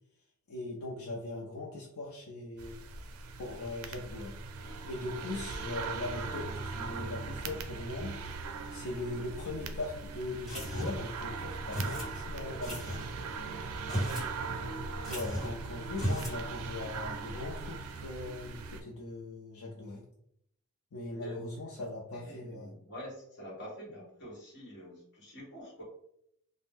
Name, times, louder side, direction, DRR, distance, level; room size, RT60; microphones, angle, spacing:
voice 1, 0.5-2.8 3.4-4.4 4.8-8.2 8.7-13.0 15.1-20.0 20.9-22.7, left 2 dB, 75° left, -3 dB, 0.5 m, -40 dB
sound 1, 2.6-18.8, right 4 dB, 80° right, 0.4 m, -40 dB
sound 2, 10.5-11.1 11.7-12.1 12.6-13.1 13.8-14.3 14.6-14.7 15.0-15.6 15.9-16.4, equal, ahead, 1.3 m, -35 dB
voice 2, 13.9-14.2 21.1-21.5 22.1-25.8, equal, 50° left, -3 dB, 1.2 m, -46 dB
2.5 x 2.0 x 3.5 m, 0.73 s
head